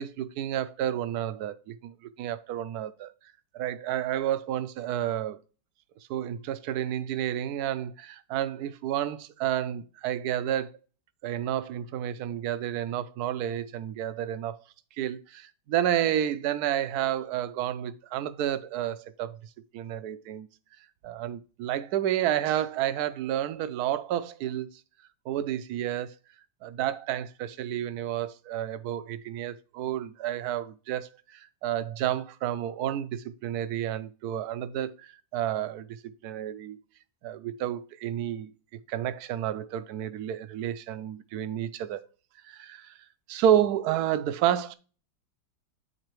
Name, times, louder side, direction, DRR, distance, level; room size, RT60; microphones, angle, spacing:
voice 1, 0.0-3.1 3.5-5.4 6.1-10.7 11.2-14.6 15.0-19.4 19.7-20.5 21.0-24.8 25.3-26.1 26.6-36.8 37.2-38.5 38.9-42.0 42.4-43.0 43.3-44.7, right 11 dB, 70° right, 1.0 m, -30 dB
9.5 x 4.1 x 3.0 m
omnidirectional pair, 2.0 m